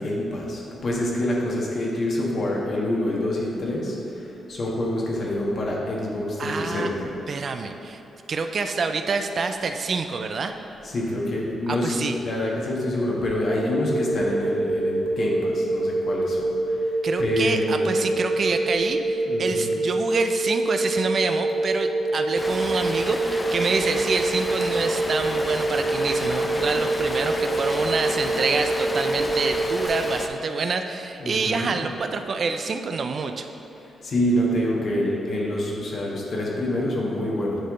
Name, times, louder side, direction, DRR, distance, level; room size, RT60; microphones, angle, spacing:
voice 1, 0.0-7.1 10.8-18.1 19.3-19.7 31.2-31.8 33.8-37.6, left 1 dB, 60° left, -3 dB, 1.3 m, -27 dB
voice 2, 6.4-6.9 7.3-8.0 8.3-10.6 11.7-12.2 17.0-33.5, right 4 dB, 55° right, 7 dB, 0.4 m, -27 dB
sound 1, 13.5-29.9, right 2 dB, 30° right, 1.1 m, -26 dB
Rain, 22.3-30.3, left 1 dB, 20° left, 0.6 m, -32 dB
8.9 x 3.6 x 3.7 m, 2.8 s
cardioid pair, 65°, 0 cm